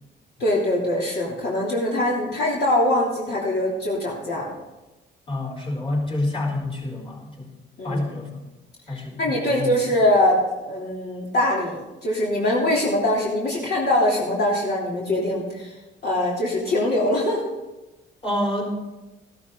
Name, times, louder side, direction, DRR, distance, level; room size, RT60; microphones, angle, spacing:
voice 1, 0.4-4.5 7.8-8.0 8.9-10.4 10.6-15.7 16.0-17.6, left 1 dB, 55° left, -5 dB, 3.2 m, -23 dB
voice 2, 5.3-7.5 7.8-8.3 8.9-9.7 18.2-18.8, left 1 dB, 25° left, 1 dB, 4.5 m, -27 dB
14.0 x 13.0 x 4.0 m, 1.0 s
cardioid pair, 90°, 20 cm